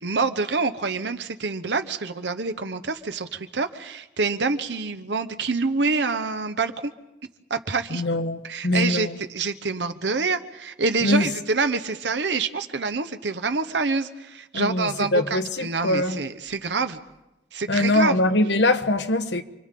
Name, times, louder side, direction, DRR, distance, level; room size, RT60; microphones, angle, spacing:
voice 1, 0.0-6.9 7.5-8.0 8.4-17.0 17.5-18.2, right 4 dB, 85° right, 1.1 m, -26 dB
voice 2, 7.9-9.1 11.0-11.3 14.5-16.2 17.7-19.4, left 1 dB, 85° left, 1.2 m, -22 dB
29.5 x 24.0 x 3.8 m
head